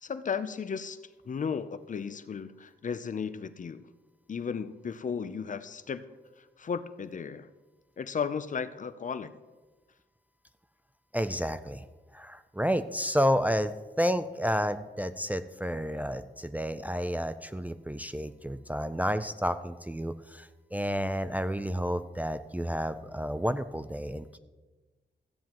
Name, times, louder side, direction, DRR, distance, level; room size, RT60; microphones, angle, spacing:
voice 1, 0.0-1.0 1.3-3.9 4.3-6.0 6.6-7.5 8.0-9.3, left 6 dB, 45° left, 13 dB, 0.5 m, -34 dB
voice 2, 11.1-11.8 12.1-24.4, equal, 10° right, 10 dB, 0.4 m, -30 dB
14.0 x 9.3 x 3.0 m, 1.2 s
wide cardioid pair, 95°, 18 cm